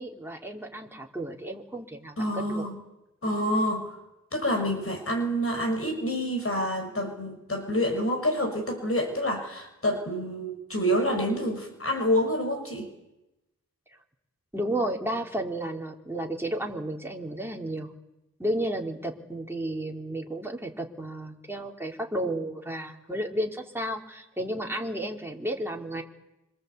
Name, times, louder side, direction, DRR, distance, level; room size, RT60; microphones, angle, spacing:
voice 1, 0.0-2.6 14.5-17.9 18.4-26.0, right 1 dB, 10° right, 0 dB, 3.8 m, -32 dB
voice 2, 2.2-2.8 3.2-4.0 4.3-12.9, equal, 45° left, 4 dB, 6.3 m, -27 dB
26.5 x 24.5 x 8.4 m, 0.91 s
wide cardioid pair, 75°, 30 cm